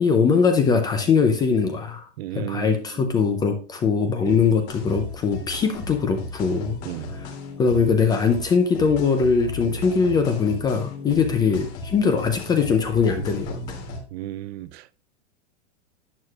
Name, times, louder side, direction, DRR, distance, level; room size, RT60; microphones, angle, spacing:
voice 1, 0.0-2.1 2.3-6.8 7.1-7.3 7.6-13.6, left 5 dB, 10° left, 0.4 m, -21 dB
voice 2, 2.2-2.8 4.3-4.4 6.8-7.1 11.1-11.2 14.1-14.9, right 14 dB, 55° right, 0.5 m, -33 dB
sound 1, 4.3-14.0, left 2 dB, 60° left, 2.8 m, -36 dB
11.0 x 7.8 x 2.4 m
supercardioid pair, 145°, 37 cm